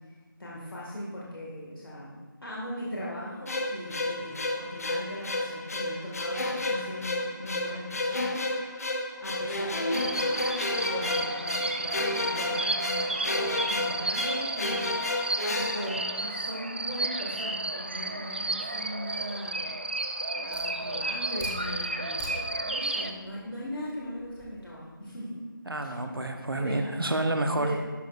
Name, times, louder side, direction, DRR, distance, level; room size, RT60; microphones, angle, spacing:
voice 1, 0.4-2.2 2.4-8.4 8.7-8.9 9.2-14.9 15.5-19.7 20.3-25.5 25.8-26.1 26.4-26.9 27.5-27.9, equal, 75° left, -5 dB, 1.9 m, -39 dB
sound 1, 3.5-16.7, left 2 dB, 45° left, 0.6 m, -31 dB
voice 2, 3.9-4.4 25.7-27.7, right 1 dB, 80° right, 6 dB, 0.9 m, -30 dB
sound 2, 9.9-23.1, right 2 dB, 30° right, 0.3 m, -32 dB
Fire, 19.9-24.5, equal, 5° left, 0.7 m, -46 dB
11.5 x 6.3 x 2.5 m, 1.4 s
figure-of-eight pair, 165°, 12 cm